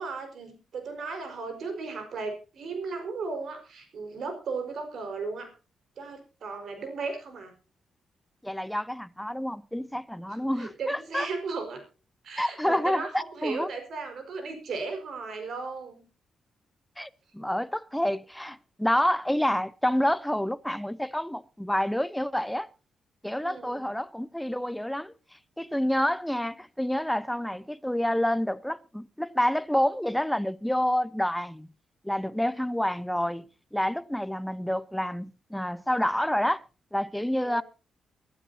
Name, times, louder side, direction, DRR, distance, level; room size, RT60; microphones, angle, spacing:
voice 1, 0.0-5.5 6.0-7.5 10.3-11.8 12.2-16.1 23.4-23.8 37.4-37.6, right 4 dB, 65° right, 4.7 m, -36 dB
voice 2, 8.4-11.3 12.4-13.7 17.0-22.7 23.2-25.1 25.6-31.7 32.0-33.4 33.7-36.6 36.9-37.6, equal, 5° left, 0.7 m, -28 dB
24.5 x 12.0 x 2.7 m
cardioid pair, 105°, 0 cm